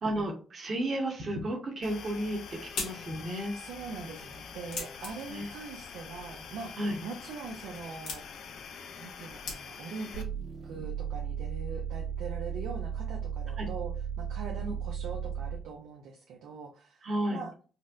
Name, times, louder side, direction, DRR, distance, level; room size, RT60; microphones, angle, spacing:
voice 1, 0.0-2.4 2.7-3.5 5.3-5.5 6.8-7.0 13.6-13.7 14.6-14.7 17.0-17.4, right 1 dB, 45° right, -1 dB, 1.0 m, -32 dB
sound 1, 1.8-10.2, left 6 dB, 70° left, 0.4 m, -45 dB
sound 2, 2.1-10.1, left 4 dB, 90° left, 1.2 m, -45 dB
voice 2, 3.5-8.3 8.9-10.3 10.6-13.9 14.2-17.5, right 5 dB, 85° right, 1 dB, 0.5 m, -42 dB
sound 3, 10.1-15.7, right 7 dB, 70° right, 1.4 m, -35 dB
4.0 x 2.1 x 2.5 m, 0.37 s
cardioid pair, 90°, 0 cm